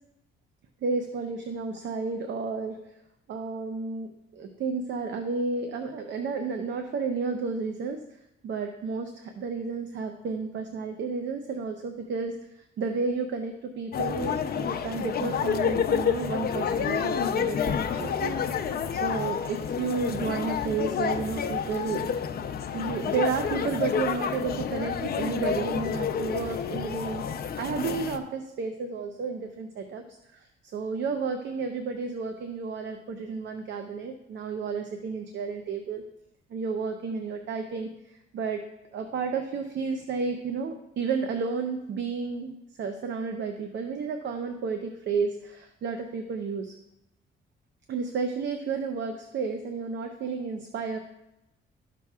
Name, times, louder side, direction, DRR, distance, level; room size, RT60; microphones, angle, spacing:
voice 1, 0.8-2.8 3.3-8.0 8.4-18.3 18.9-22.0 22.7-27.2 27.6-36.0 36.5-38.6 38.9-46.7 47.9-51.0, right 4 dB, 65° right, 6 dB, 0.7 m, -32 dB
sound 1, 13.9-28.2, left 7 dB, 50° left, 0.6 m, -29 dB
13.0 x 5.9 x 2.4 m, 0.85 s
cardioid pair, 90°, 20 cm